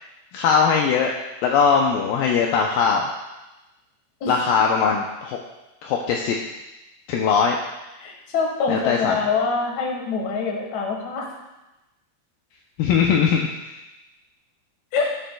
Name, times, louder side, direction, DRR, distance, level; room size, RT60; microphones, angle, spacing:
voice 1, 0.3-1.1 1.4-3.1 4.3-5.4 5.8-6.4 7.1-7.6 8.7-9.2 12.8-13.5, left 6 dB, 80° left, 0 dB, 2.3 m, -20 dB
voice 2, 4.2-4.6 8.0-11.3 14.9-15.2, left 4 dB, 60° left, 0 dB, 2.4 m, -25 dB
15.0 x 7.0 x 2.3 m, 1.0 s
omnidirectional pair, 4.3 m